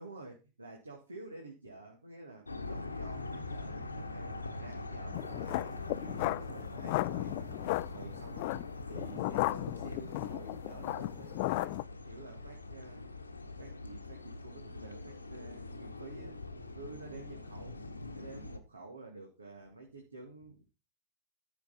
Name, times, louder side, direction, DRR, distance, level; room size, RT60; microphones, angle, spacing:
voice 1, 0.0-7.5 7.9-8.5 8.8-11.7 12.0-13.3 13.6-16.4 16.8-17.8 18.1-20.6, right 3 dB, 80° right, 1 dB, 2.4 m, -50 dB
sound 1, 2.5-18.6, left 2 dB, 80° left, 1.3 m, -43 dB
sound 2, 5.1-11.8, left 20 dB, 50° left, 0.5 m, -35 dB
13.5 x 6.5 x 4.3 m, 0.30 s
figure-of-eight pair, 90°, 0 cm